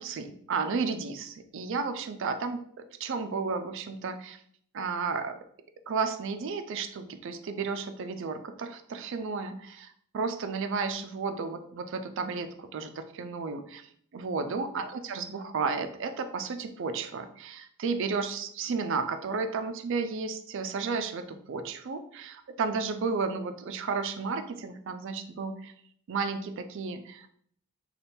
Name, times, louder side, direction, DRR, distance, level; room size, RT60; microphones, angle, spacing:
voice 1, 0.0-4.4 4.7-5.4 5.9-13.9 14.1-25.7 26.1-27.3, right 4 dB, 60° right, 8 dB, 0.4 m, -33 dB
4.1 x 2.3 x 3.4 m, 0.63 s
head